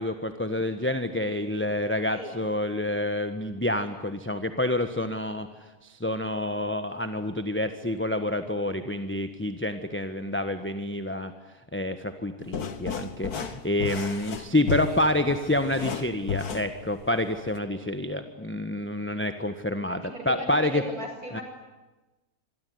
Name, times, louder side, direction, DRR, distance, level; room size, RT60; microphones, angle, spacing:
voice 1, 0.0-5.5 5.8-11.3 11.7-20.0 20.2-20.8 21.3-21.4, left 1 dB, 10° left, 8 dB, 1.3 m, -28 dB
voice 2, 2.1-2.4 14.7-15.0 19.9-21.4, right 1 dB, 65° right, 4 dB, 6.9 m, -37 dB
sound 1, 12.4-17.6, left 7 dB, 75° left, 2.0 m, -34 dB
26.5 x 23.0 x 9.6 m, 1.1 s
omnidirectional pair, 1.6 m